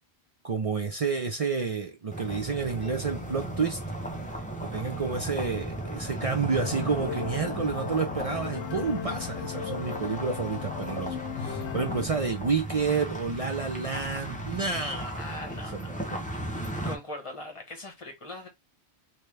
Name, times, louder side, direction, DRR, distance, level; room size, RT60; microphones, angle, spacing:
voice 1, 0.4-3.8 4.3-15.2 15.7-16.3, right 5 dB, 45° right, 0.5 m, -30 dB
sound 1, 2.1-17.0, right 1 dB, 10° left, 0.6 m, -36 dB
sound 2, 6.6-12.1, left 8 dB, 85° left, 0.9 m, -36 dB
voice 2, 15.1-16.1 16.8-18.5, left 1 dB, 30° left, 1.1 m, -40 dB
3.2 x 3.0 x 3.3 m
omnidirectional pair, 1.1 m